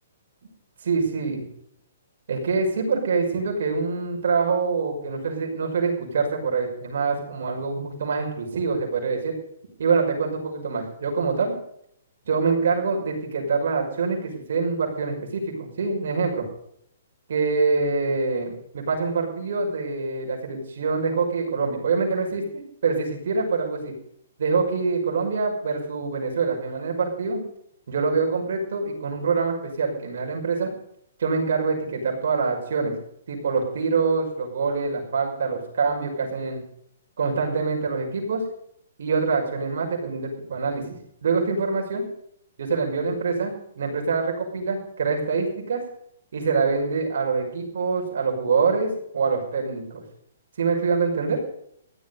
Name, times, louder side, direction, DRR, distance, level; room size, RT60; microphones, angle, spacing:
voice 1, 0.9-1.4 2.3-9.3 9.8-11.5 12.3-16.4 17.3-23.9 24.4-27.4 27.9-30.7 31.2-32.9 33.3-36.6 37.2-38.4 39.0-40.8 41.2-42.1 42.6-45.8 46.3-50.0 50.6-51.4, right 4 dB, 65° right, 0 dB, 5.9 m, -25 dB
16.0 x 12.0 x 5.4 m, 0.70 s
hypercardioid pair, 165°, 0 cm